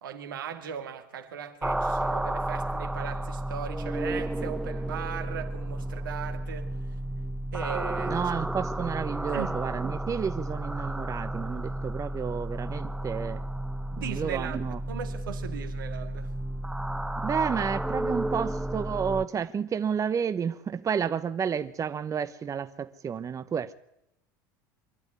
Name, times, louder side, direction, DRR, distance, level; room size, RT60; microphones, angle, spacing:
voice 1, 0.0-6.8 7.5-8.2 9.3-9.6 14.0-16.3, right 8 dB, 85° right, 2.4 m, -38 dB
sound 1, 1.6-19.2, right 1 dB, 5° right, 0.8 m, -32 dB
voice 2, 8.1-13.4 13.9-14.8 17.2-23.7, right 7 dB, 30° right, 1.1 m, -31 dB
24.0 x 12.0 x 9.7 m
hypercardioid pair, 85°, 11 cm